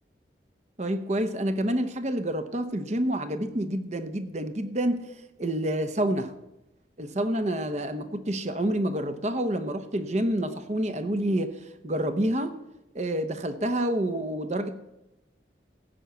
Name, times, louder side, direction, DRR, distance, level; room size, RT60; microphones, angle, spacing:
voice 1, 0.8-5.0 5.4-6.3 7.0-12.6 12.9-14.7, right 1 dB, 40° right, 9 dB, 0.8 m, -28 dB
15.5 x 5.6 x 8.1 m, 0.92 s
head